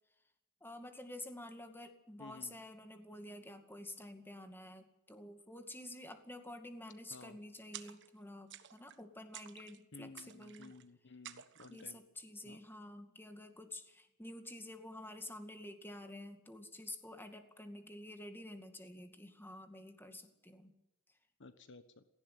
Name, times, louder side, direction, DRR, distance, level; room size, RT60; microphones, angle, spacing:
voice 1, 0.6-10.7 11.7-20.7, left 1 dB, 10° left, 7 dB, 2.2 m, -50 dB
voice 2, 2.2-2.6 7.1-7.4 9.9-12.0 12.4-12.6 21.4-22.0, left 3 dB, 60° left, 11 dB, 1.2 m, -54 dB
sound 1, 7.7-8.2 8.5-9.0 9.3-9.8 10.2-10.8 11.2-11.9, right 11 dB, 60° right, 1.3 m, -52 dB
17.5 x 15.5 x 9.4 m, 0.87 s
head